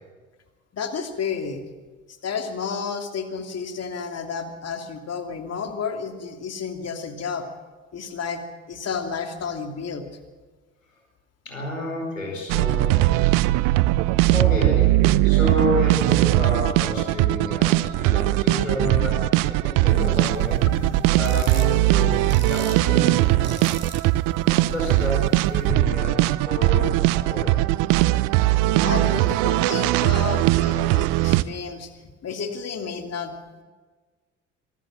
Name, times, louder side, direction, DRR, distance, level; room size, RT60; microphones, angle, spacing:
voice 1, 0.7-1.6 2.2-7.5 7.9-10.0 20.7-21.1 28.5-33.3, left 5 dB, 40° left, 5 dB, 2.8 m, -31 dB
voice 2, 11.4-13.0 14.3-15.0 15.2-20.6 21.1-23.6 24.4-27.5, left 1 dB, 90° left, -1 dB, 4.8 m, -30 dB
sound 1, 12.5-31.4, right 18 dB, 60° right, 0.7 m, -20 dB
sound 2, 19.9-25.7, right 4 dB, 30° right, 3.7 m, -40 dB
25.0 x 15.0 x 7.5 m, 1.4 s
figure-of-eight pair, 50°, 37 cm